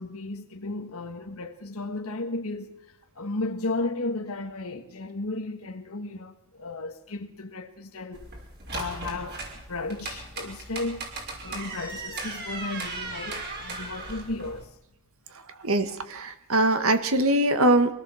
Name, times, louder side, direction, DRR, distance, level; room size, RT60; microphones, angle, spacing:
voice 1, 0.0-8.3 8.7-11.1 11.4-14.8, left 2 dB, 65° left, 1.5 m, -34 dB
sound 1, 8.1-14.6, right 3 dB, 50° right, 5.9 m, -37 dB
voice 2, 15.6-17.9, right 1 dB, 70° right, 1.8 m, -22 dB
24.5 x 18.0 x 7.2 m
head